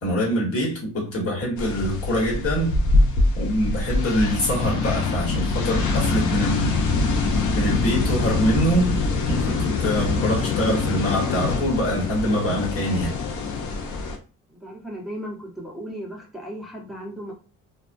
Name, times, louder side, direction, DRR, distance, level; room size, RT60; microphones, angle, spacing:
voice 1, 0.0-2.7 3.3-6.8 7.5-9.0 9.3-13.1, equal, 50° left, 1.3 m, -24 dB
sound 1, 1.6-14.2, left 3 dB, 80° left, 0.6 m, -24 dB
voice 2, 14.5-17.3, equal, ahead, 0.8 m, -36 dB
2.3 x 2.1 x 2.5 m
cardioid pair, 90°, 30 cm